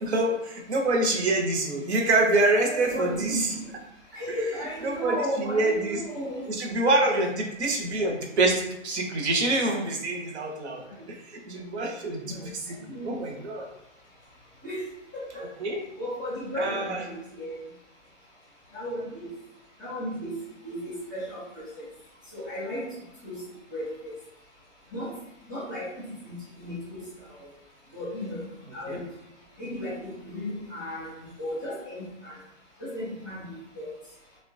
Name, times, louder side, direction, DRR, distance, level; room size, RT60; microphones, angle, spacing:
voice 1, 0.0-3.5 4.3-4.4 4.8-6.0 6.5-13.7 15.4-15.8 16.6-17.0 28.9-29.0, right 2 dB, 60° right, 2 dB, 0.7 m, -26 dB
voice 2, 2.7-3.6 4.1-6.5 12.3-12.5 12.9-13.2 14.6-14.8 15.1-15.4 16.0-17.5 18.7-19.3 19.8-20.3 20.6-21.7 22.3-22.9 23.2-23.4 23.7-24.1 24.9-25.1 25.5-27.0 27.9-28.4 28.7-29.0 29.6-31.1 31.4-32.4 32.8-33.9, equal, 20° right, -10 dB, 0.3 m, -34 dB
2.9 x 2.1 x 2.5 m, 0.86 s
hypercardioid pair, 155°, 38 cm